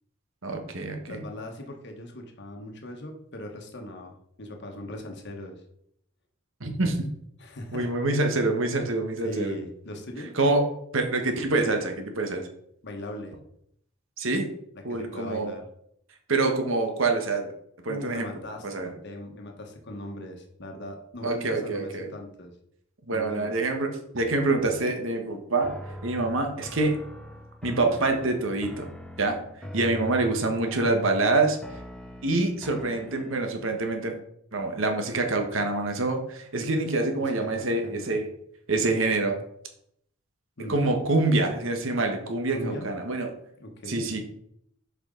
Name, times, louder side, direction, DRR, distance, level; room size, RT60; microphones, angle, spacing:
voice 1, 0.4-1.2 6.6-7.1 7.7-9.6 10.3-10.7 10.9-12.5 14.2-14.5 14.8-15.5 16.3-17.5 17.8-18.3 18.6-18.9 21.2-22.1 23.1-25.8 26.0-27.0 27.6-28.9 29.2-29.4 29.7-31.6 32.2-34.1 34.5-38.3 38.7-39.4 40.7-43.3 43.9-44.2, right 2 dB, 65° right, 4 dB, 1.2 m, -26 dB
voice 2, 1.0-5.6 7.4-7.9 9.2-10.3 12.8-13.3 14.7-15.6 17.9-22.5 23.1-23.5 29.8-30.1 37.2-38.1 40.6-40.8 42.5-42.9 43.6-44.1, left 1 dB, 55° left, 3 dB, 1.3 m, -39 dB
sound 1, 25.6-33.7, equal, 5° left, 0.6 m, -42 dB
7.2 x 5.2 x 3.8 m, 0.72 s
head